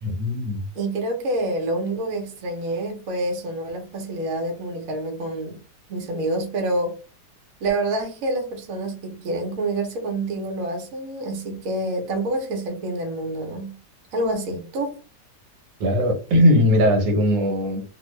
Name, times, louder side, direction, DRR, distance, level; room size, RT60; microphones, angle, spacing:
voice 1, 0.0-0.6 15.8-17.8, left 1 dB, 80° right, 1.5 m, -19 dB
voice 2, 0.7-5.6 5.9-6.9 7.6-13.8 14.1-14.9, right 2 dB, 55° right, 1.1 m, -27 dB
2.8 x 2.6 x 3.1 m
omnidirectional pair, 2.0 m